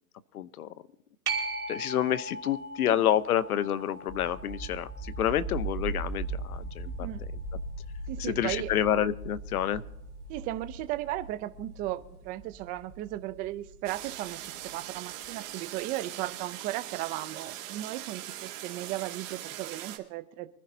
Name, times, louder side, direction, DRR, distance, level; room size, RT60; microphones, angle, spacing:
voice 1, 0.3-0.7 1.7-7.1 8.2-9.8, left 10 dB, 75° left, 16 dB, 1.0 m, -28 dB
sound 1, 1.3-8.4 14.0-14.1, right 3 dB, 85° right, 3.0 m, -40 dB
sound 2, 4.1-14.8, right 2 dB, 25° left, 3.9 m, -39 dB
voice 2, 6.9-7.2 8.1-8.7 10.3-14.4 14.7-20.5, right 15 dB, 20° right, 11 dB, 0.5 m, -36 dB
sound 3, 13.8-20.0, right 13 dB, 60° right, 2.4 m, -41 dB
24.5 x 10.5 x 2.8 m, 0.90 s
hypercardioid pair, 140°, 44 cm